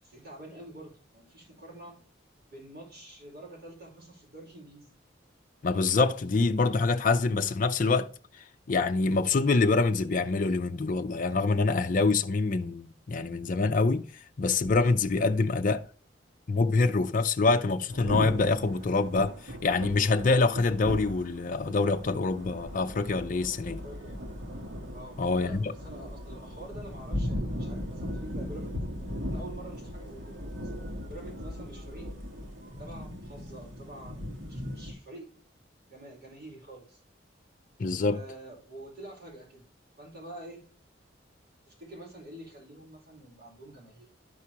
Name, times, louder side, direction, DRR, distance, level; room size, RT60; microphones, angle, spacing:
voice 1, 0.0-2.0 2.5-4.9 23.8-24.2 24.9-28.8 29.3-32.1 32.8-35.5 35.9-37.0 38.0-39.6 40.0-40.6 41.7-44.1, right 1 dB, 55° right, 4.6 m, -47 dB
voice 2, 5.6-8.1 8.7-14.1 14.4-15.9 16.5-23.8 25.2-25.7 37.8-38.2, left 3 dB, 45° left, 0.5 m, -25 dB
Thunder / Rain, 17.9-34.9, left 1 dB, 75° right, 1.6 m, -38 dB
12.0 x 4.8 x 2.9 m
head